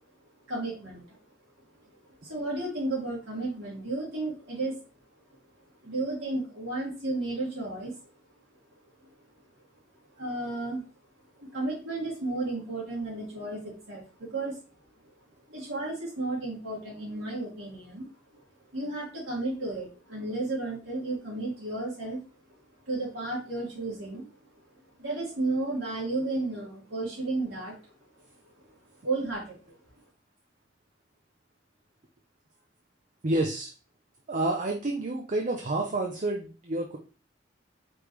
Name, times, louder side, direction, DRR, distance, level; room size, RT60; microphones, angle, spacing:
voice 1, 0.5-1.1 1.8-1.9 2.2-4.8 5.8-7.9 9.0-9.1 10.2-10.8 11.3-14.6 15.5-18.1 18.7-22.2 22.9-24.3 25.0-27.8 29.0-29.7, right 2 dB, 90° right, -5 dB, 2.1 m, -33 dB
voice 2, 33.2-33.7 34.3-37.0, right 2 dB, 40° right, 2 dB, 0.6 m, -29 dB
5.1 x 3.4 x 3.1 m, 0.35 s
head